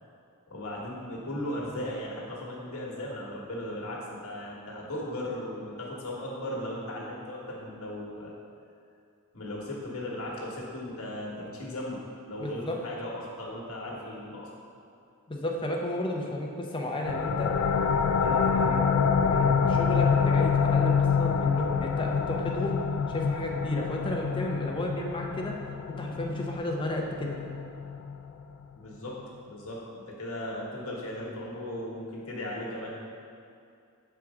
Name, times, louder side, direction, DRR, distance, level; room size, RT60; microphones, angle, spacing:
voice 1, 0.5-8.3 9.3-12.0 12.3-14.5 28.7-29.2 29.4-32.9, left 1 dB, 75° left, -4 dB, 1.2 m, -37 dB
voice 2, 12.4-12.8 15.3-17.5 18.2-18.9 19.2-22.8 23.1-25.6 25.9-27.4, left 1 dB, 25° left, 0 dB, 0.6 m, -33 dB
sound 1, 17.1-28.4, left 6 dB, 90° left, 0.3 m, -26 dB
6.2 x 4.5 x 3.5 m, 2.5 s
head